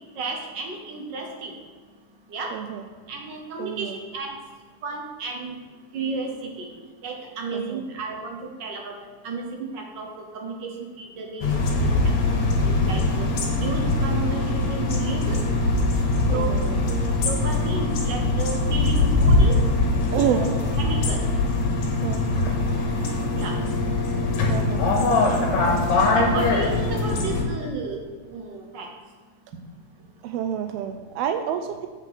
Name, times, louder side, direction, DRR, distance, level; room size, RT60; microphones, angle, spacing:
voice 1, 0.2-1.5 2.3-2.5 3.1-4.3 4.8-5.6 5.9-6.7 7.0-8.9 9.2-10.1 10.3-11.7 12.6-13.3 13.6-15.4 16.3-16.5 16.8-17.0 17.2-19.5 20.3-20.5 20.8-21.2 23.4-23.6 26.1-28.0 28.3-28.9, right 3 dB, 70° right, 1 dB, 1.0 m, -33 dB
voice 2, 2.5-2.8 3.6-3.9 7.5-7.8 16.3-16.8 20.1-20.4 22.0-22.2 24.5-25.0 30.2-31.9, right 9 dB, 90° right, 7 dB, 1.3 m, -28 dB
sound 1, 11.4-27.5, left 2 dB, 75° left, 2.7 m, -22 dB
8.1 x 5.8 x 5.7 m, 1.5 s
omnidirectional pair, 3.3 m